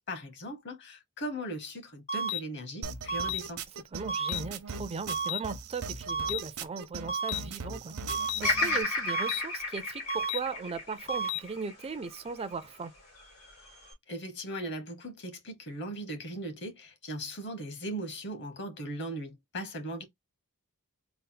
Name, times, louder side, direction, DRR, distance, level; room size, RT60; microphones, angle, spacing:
voice 1, 0.0-3.6 14.1-20.0, right 1 dB, 55° left, 1.2 m, -38 dB
sound 1, 2.1-2.4 3.1-3.4 4.1-4.4 5.1-5.4 6.1-6.4 7.1-7.4 8.1-8.4 9.1-9.4 10.1-10.4 11.1-11.4, equal, 30° left, 0.5 m, -31 dB
sound 2, 2.8-8.8, right 5 dB, 70° right, 0.7 m, -39 dB
voice 2, 3.9-12.9, right 4 dB, 25° right, 0.4 m, -38 dB
Bird vocalization bird call bird song, 8.4-12.6 13.2-13.9, left 2 dB, 85° left, 2.4 m, -32 dB
4.0 x 2.0 x 4.0 m
head